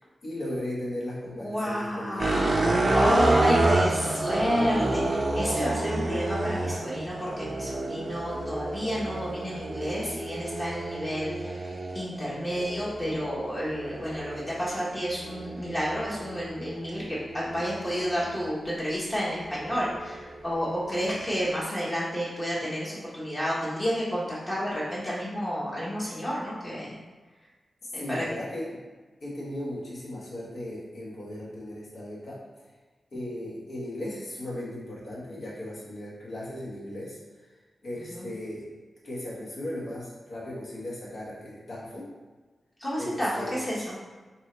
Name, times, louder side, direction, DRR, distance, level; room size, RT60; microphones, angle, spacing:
voice 1, 0.2-2.8 28.0-28.8 29.2-32.4 33.1-37.2 37.8-38.6 39.0-42.1 43.0-43.6, left 1 dB, 65° left, -6 dB, 1.3 m, -37 dB
voice 2, 1.4-27.0 27.9-28.3 38.1-38.3 42.8-44.0, equal, 25° left, -7 dB, 1.1 m, -30 dB
sound 1, 2.2-18.5 19.2-21.6, right 2 dB, 45° right, 0.5 m, -30 dB
4.5 x 2.8 x 3.2 m, 1.3 s
wide cardioid pair, 110°, 0 cm